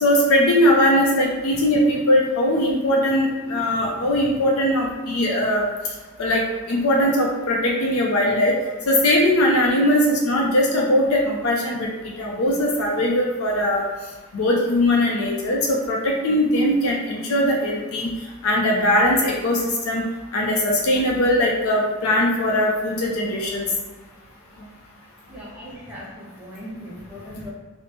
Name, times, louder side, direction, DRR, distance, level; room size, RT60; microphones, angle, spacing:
voice 1, 0.0-5.7 6.2-6.4 6.7-8.5 8.9-11.9 12.2-13.9 14.3-18.1 18.4-20.0 20.3-23.7, left 1 dB, 80° left, -1 dB, 0.5 m, -20 dB
voice 2, 25.3-27.5, equal, 5° right, -6 dB, 0.5 m, -38 dB
2.9 x 2.0 x 3.2 m, 1.3 s
head